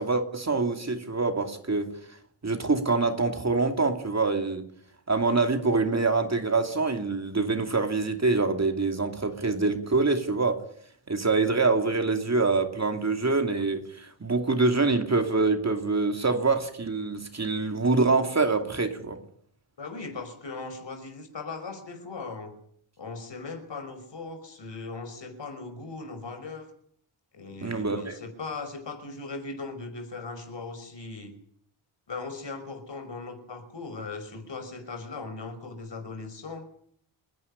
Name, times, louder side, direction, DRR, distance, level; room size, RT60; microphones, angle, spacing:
voice 1, 0.0-1.9 2.4-4.6 5.1-10.6 11.1-19.2 27.6-28.1, right 3 dB, 30° right, 6 dB, 2.7 m, -25 dB
voice 2, 19.8-22.5 23.0-26.7 27.3-31.3 32.1-36.7, left 3 dB, 60° left, 7 dB, 5.5 m, -38 dB
30.0 x 11.0 x 10.0 m, 0.64 s
wide cardioid pair, 160°, 50 cm